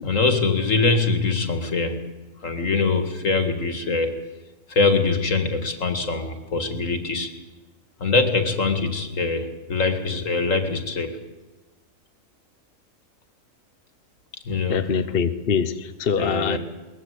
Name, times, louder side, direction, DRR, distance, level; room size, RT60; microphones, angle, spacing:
voice 1, 0.0-2.1 2.4-4.2 4.7-7.3 8.0-11.2 14.4-15.0 16.2-16.6, left 3 dB, 75° left, 6 dB, 2.4 m, -23 dB
voice 2, 14.7-16.6, left 6 dB, 50° left, 9 dB, 1.1 m, -24 dB
22.0 x 20.0 x 8.2 m, 1.2 s
omnidirectional pair, 1.4 m